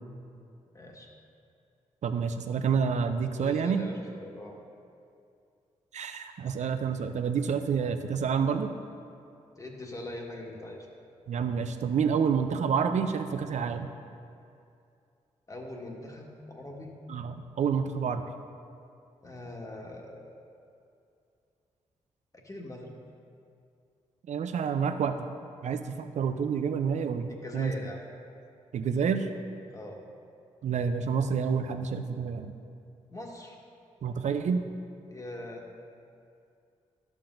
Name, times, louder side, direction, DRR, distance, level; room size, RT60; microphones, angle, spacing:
voice 1, 0.7-1.1 3.4-4.6 9.6-10.9 15.5-16.9 19.2-20.3 22.4-22.9 27.3-28.0 29.7-30.0 33.1-33.6 35.1-35.6, left 1 dB, 25° left, -1 dB, 1.5 m, -42 dB
voice 2, 2.0-3.8 5.9-8.7 11.3-13.9 17.1-18.2 24.3-25.3 25.6-27.7 28.7-29.3 30.6-32.5 34.0-34.6, right 6 dB, 65° right, 8 dB, 0.5 m, -28 dB
11.5 x 7.3 x 2.6 m, 2.5 s
supercardioid pair, 50°, 13 cm